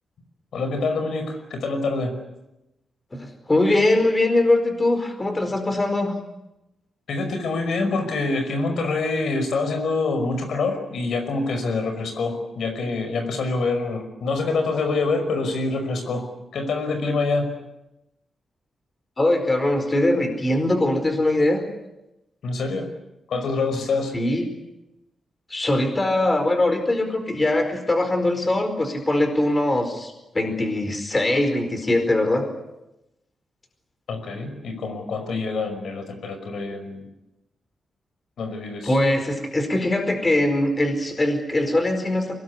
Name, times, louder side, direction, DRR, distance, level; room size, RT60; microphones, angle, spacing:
voice 1, 0.5-2.2 7.1-17.5 22.4-22.9 23.3-24.2 34.1-37.1 38.4-39.0, left 3 dB, 80° left, 7 dB, 5.4 m, -26 dB
voice 2, 3.2-6.1 19.2-21.7 24.1-24.5 25.5-32.5 38.9-42.3, left 1 dB, 20° left, 6 dB, 4.6 m, -21 dB
24.5 x 20.5 x 9.7 m, 0.93 s
wide cardioid pair, 125°, 0 cm